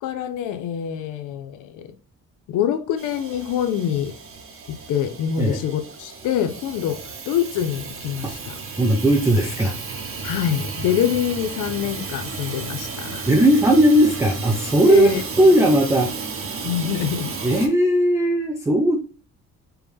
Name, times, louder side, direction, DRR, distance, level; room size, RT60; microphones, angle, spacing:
voice 1, 0.0-1.9 2.5-4.1 4.9-7.0 7.3-8.6 10.2-13.3 14.9-15.2 16.6-17.3, left 9 dB, 90° left, 0.6 m, -25 dB
Hiss / Toilet flush / Trickle dribble, 3.0-17.7, right 4 dB, 45° right, 0.8 m, -33 dB
voice 2, 8.8-9.7 13.3-15.1 15.4-16.3 17.4-19.0, right 1 dB, 10° right, 0.4 m, -17 dB
4.5 x 2.1 x 3.4 m
cardioid pair, 90°, 30 cm